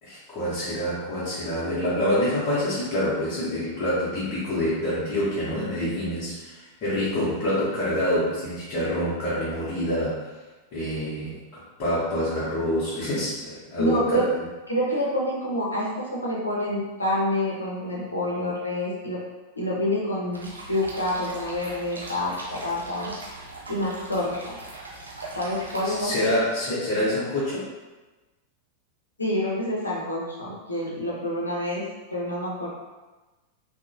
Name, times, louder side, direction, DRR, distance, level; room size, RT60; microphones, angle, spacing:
voice 1, 0.0-10.2 10.7-14.2 25.8-27.7, left 1 dB, 40° left, -9 dB, 0.8 m, -26 dB
voice 2, 13.8-14.2 14.7-19.2 19.6-23.1 23.7-24.6 25.3-26.1 29.2-31.8 32.1-32.7, left 1 dB, 80° left, -4 dB, 0.6 m, -27 dB
sound 1, 20.3-26.0, right 2 dB, 80° right, 0.6 m, -40 dB
2.8 x 2.0 x 2.5 m, 1.2 s
figure-of-eight pair, 90°, 0 cm